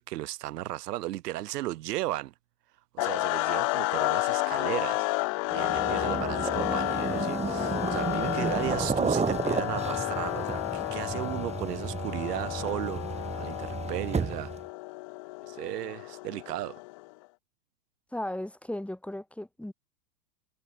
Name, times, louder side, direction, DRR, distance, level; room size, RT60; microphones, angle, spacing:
voice 1, 0.0-2.3 2.9-5.1 5.5-14.5 15.5-16.8, right 16 dB, 65° right, 1.2 m, -35 dB
sound 1, 3.0-17.1, left 27 dB, 25° left, 0.3 m, -31 dB
sound 2, 5.5-14.6, right 5 dB, 15° right, 2.6 m, -32 dB
voice 2, 18.1-19.7, left 1 dB, ahead, 3.9 m, -36 dB
hypercardioid pair, 115°, 50 cm